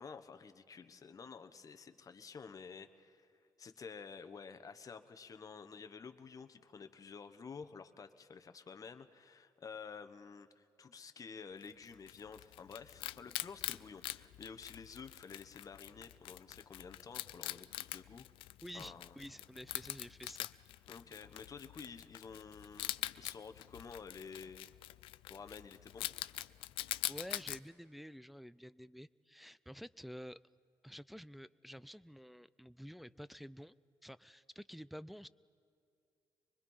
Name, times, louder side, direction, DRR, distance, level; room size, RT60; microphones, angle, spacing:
voice 1, 0.0-3.3 3.6-18.3 18.7-19.2 20.9-24.7 25.3-26.1, left 5 dB, 40° left, 8 dB, 1.1 m, -51 dB
Wild animals, 11.6-27.6, left 15 dB, 90° left, 0.4 m, -44 dB
voice 2, 18.6-20.5 27.1-30.4 30.8-33.7 34.0-35.3, equal, ahead, 15 dB, 0.4 m, -50 dB
24.0 x 21.0 x 5.6 m, 2.5 s
cardioid pair, 75°, 9 cm